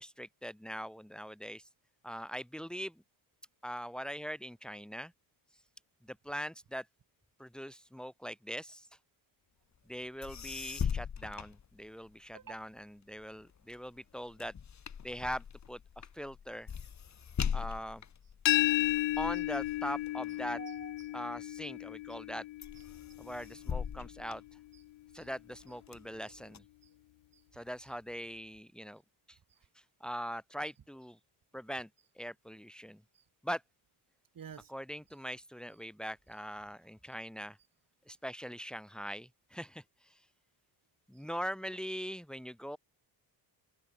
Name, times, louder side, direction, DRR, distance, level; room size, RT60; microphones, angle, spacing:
voice 1, 0.0-1.6 2.0-3.0 3.6-5.1 6.0-6.9 7.4-8.9 9.9-14.5 15.0-16.7 17.5-18.0 19.2-20.6 21.1-22.4 23.2-24.4 25.1-26.6 27.5-29.0 29.3-29.4 30.0-31.2 31.5-31.9 32.2-33.0 33.4-33.6 34.7-37.6 38.1-40.1 41.1-42.8, equal, ahead, 4.9 m, -41 dB
sound 1, 9.9-10.0 10.2-12.3 12.8-21.4 21.9-22.3 22.6-25.1 25.6-26.6, left 7 dB, 40° left, 2.6 m, -41 dB
sound 2, 18.5-24.2, left 16 dB, 80° left, 1.2 m, -34 dB
voice 2, 20.5-21.2 25.2-25.3 27.3-27.4 34.3-34.7, right 8 dB, 45° right, 6.7 m, -48 dB
cardioid pair, 125°, 44 cm